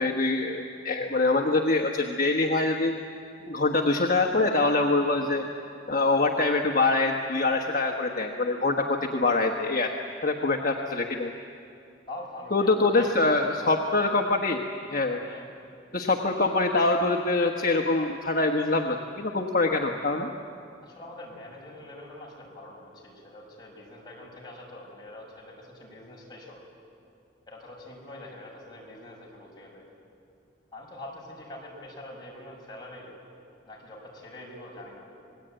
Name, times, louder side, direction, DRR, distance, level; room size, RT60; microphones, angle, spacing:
voice 1, 0.0-2.9 3.5-5.4 5.9-9.9 10.2-11.3 12.5-14.6 14.9-15.2 15.9-20.3, left 3 dB, 45° left, 2 dB, 1.2 m, -24 dB
voice 2, 12.1-13.2 13.5-13.8 15.3-15.5 20.8-26.6 27.5-29.9 30.7-33.2 33.7-35.1, left 1 dB, 20° left, -3 dB, 6.2 m, -44 dB
27.0 x 20.5 x 9.0 m, 2.5 s
head